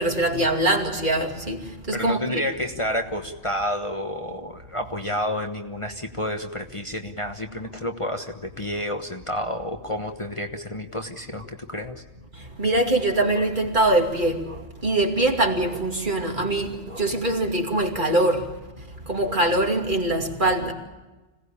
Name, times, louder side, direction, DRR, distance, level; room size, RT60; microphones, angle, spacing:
voice 1, 0.0-1.6 1.9-2.4 12.6-14.5 14.8-18.4 19.1-20.7, right 1 dB, 45° right, 2.8 m, -23 dB
voice 2, 1.9-12.0, left 1 dB, 30° left, 1.2 m, -30 dB
26.0 x 18.0 x 8.5 m
omnidirectional pair, 1.2 m